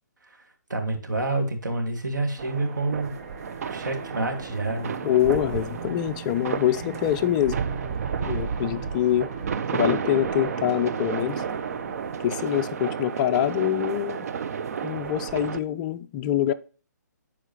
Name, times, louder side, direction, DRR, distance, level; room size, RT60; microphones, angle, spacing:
voice 1, 0.7-3.2 3.7-4.9, right 2 dB, 85° right, 1.9 m, -28 dB
sound 1, 2.4-15.6, right 7 dB, 55° right, 0.5 m, -32 dB
sound 2, 2.7-13.2, right 3 dB, 35° right, 1.3 m, -40 dB
voice 2, 5.0-7.6 8.2-9.3 9.7-11.4 12.2-14.3 14.8-16.5, left 12 dB, 25° left, 0.4 m, -25 dB
11.0 x 4.4 x 2.9 m
hypercardioid pair, 145°, 10 cm